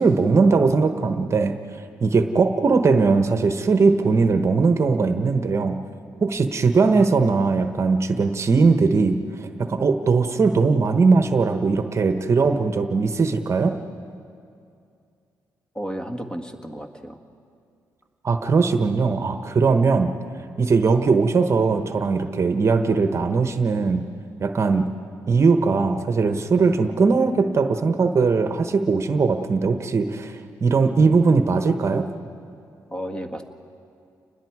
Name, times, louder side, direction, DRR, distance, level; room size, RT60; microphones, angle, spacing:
voice 1, 0.0-1.5 2.0-5.8 6.2-13.8 18.2-20.1 20.6-24.0 24.4-24.9 25.3-32.1, right 4 dB, 40° right, 7 dB, 1.1 m, -20 dB
voice 2, 15.7-17.2 32.9-33.4, equal, 10° left, 5 dB, 1.7 m, -32 dB
29.5 x 20.5 x 4.8 m, 2.4 s
cardioid pair, 85°, 7 cm